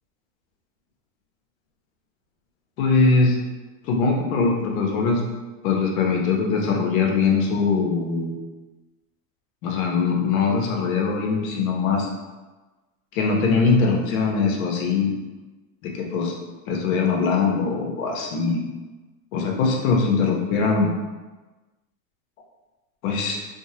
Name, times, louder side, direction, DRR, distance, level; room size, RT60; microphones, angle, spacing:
voice 1, 2.8-3.4 3.8-5.2 5.6-8.4 9.6-12.1 13.1-15.1 15.8-16.3 16.7-18.6 19.3-20.9 23.0-23.4, left 4 dB, 80° left, 0 dB, 0.8 m, -21 dB
3.5 x 2.0 x 2.7 m, 1.2 s
supercardioid pair, 110°, 40 cm